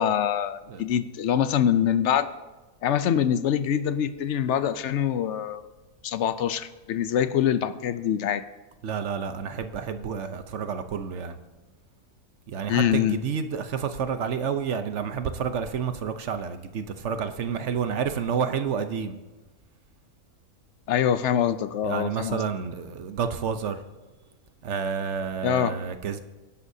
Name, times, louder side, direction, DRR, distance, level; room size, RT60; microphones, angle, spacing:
voice 1, 0.0-2.3 2.8-5.7 6.0-8.4 12.7-13.2 20.9-22.4 25.4-25.8, left 9 dB, 65° left, 13 dB, 0.9 m, -24 dB
voice 2, 8.8-11.4 12.5-19.1 21.8-23.8 24.6-26.2, right 6 dB, 60° right, 9 dB, 1.1 m, -29 dB
24.0 x 11.0 x 2.7 m, 1.2 s
omnidirectional pair, 1.4 m